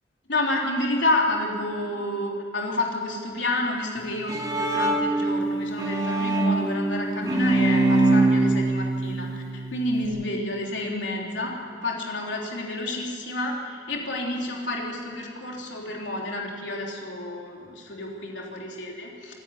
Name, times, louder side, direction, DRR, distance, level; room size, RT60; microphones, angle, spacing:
voice 1, 0.3-11.6 11.8-19.3, left 2 dB, 85° left, -1 dB, 3.6 m, -29 dB
Bowed string instrument, 4.0-10.1, right 2 dB, 20° right, 2.2 m, -23 dB
26.5 x 10.5 x 9.6 m, 2.4 s
head